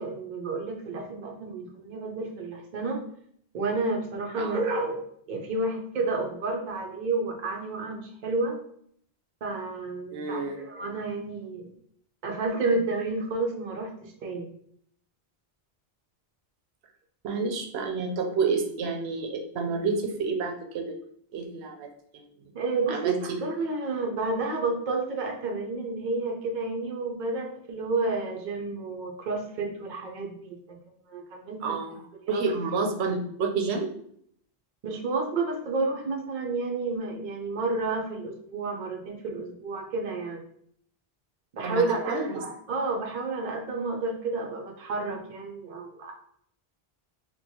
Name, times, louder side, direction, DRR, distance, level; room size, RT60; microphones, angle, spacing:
voice 1, 0.0-3.0 3.5-5.0 5.3-8.6 9.4-11.7 12.2-14.5 22.5-30.8 31.1-31.8 32.2-32.4 34.8-40.4 41.5-46.1, right 3 dB, 55° right, 1 dB, 0.7 m, -30 dB
voice 2, 10.1-10.6 17.2-21.0 21.3-22.2 22.9-23.2 31.6-32.0 32.3-33.9 41.6-42.4, right 4 dB, 85° right, 3 dB, 0.8 m, -29 dB
4.3 x 2.2 x 2.7 m, 0.67 s
omnidirectional pair, 1.1 m